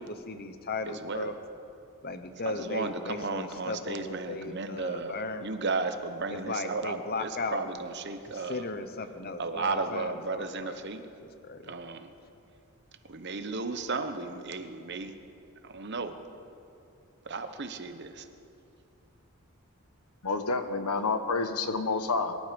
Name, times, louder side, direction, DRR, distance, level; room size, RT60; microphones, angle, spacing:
voice 1, 0.3-1.3 2.0-5.4 6.3-7.6 8.2-10.8 11.2-11.7, left 3 dB, 45° left, 9 dB, 0.9 m, -36 dB
voice 2, 0.9-1.3 2.4-8.6 9.4-11.1 11.7-12.1 13.1-15.2 15.6-16.1 17.2-18.3, right 3 dB, 50° right, 8 dB, 1.0 m, -34 dB
voice 3, 20.2-22.4, left 3 dB, 90° left, 8 dB, 1.2 m, -29 dB
23.0 x 12.0 x 5.3 m, 2.6 s
head